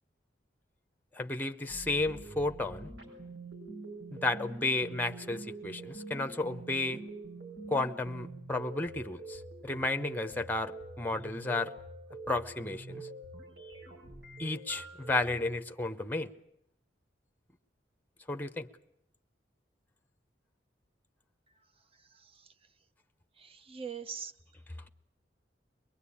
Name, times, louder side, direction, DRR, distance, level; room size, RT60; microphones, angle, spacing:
voice 1, 1.1-2.9 4.1-7.0 7.7-11.7 12.3-13.1 14.4-16.3 18.3-18.7, left 2 dB, 10° left, 9 dB, 0.8 m, -33 dB
sound 1, 1.7-15.5, right 2 dB, 70° right, 6.7 m, -46 dB
voice 2, 22.0-22.5 23.4-24.3, right 6 dB, 30° right, 11 dB, 0.8 m, -43 dB
23.5 x 21.0 x 8.6 m, 0.80 s
head